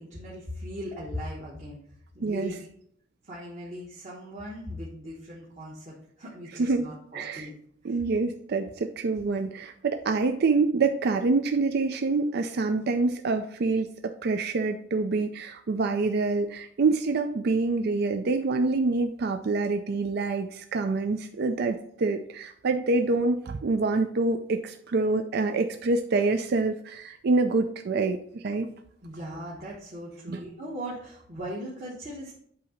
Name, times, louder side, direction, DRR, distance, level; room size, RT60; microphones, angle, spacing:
voice 1, 0.0-1.8 2.1-2.7 3.2-7.5 7.8-8.0 29.0-32.3, equal, 40° right, -6 dB, 1.3 m, -39 dB
voice 2, 2.2-2.5 6.6-6.9 7.1-7.5 7.8-28.7 30.3-30.4, right 3 dB, 55° right, 6 dB, 0.4 m, -26 dB
8.3 x 2.8 x 5.6 m, 0.68 s
head